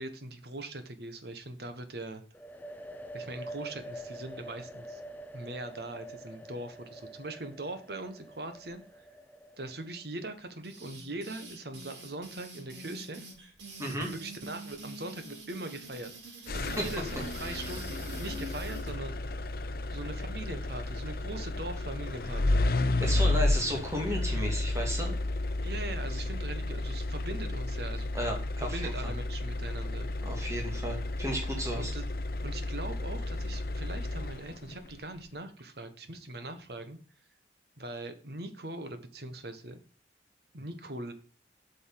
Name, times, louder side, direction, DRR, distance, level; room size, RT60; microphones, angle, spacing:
voice 1, 0.0-2.2 3.1-5.0 5.3-9.0 9.6-13.2 14.0-16.1 16.5-19.2 19.9-22.6 25.6-28.1 28.6-30.1 31.7-32.0 32.4-37.0 37.8-39.8 40.5-41.1, right 2 dB, 55° right, 9 dB, 1.4 m, -41 dB
sound 1, 2.3-10.0, right 1 dB, 10° left, 0.7 m, -46 dB
sound 2, 10.6-18.9, right 2 dB, 75° right, 3.7 m, -45 dB
sound 3, 16.5-34.7, left 2 dB, 50° left, 0.7 m, -32 dB
voice 2, 23.0-25.2 26.1-26.2 28.1-29.1 30.2-31.9, equal, 15° right, 0 dB, 2.6 m, -34 dB
8.6 x 5.4 x 7.7 m, 0.39 s
head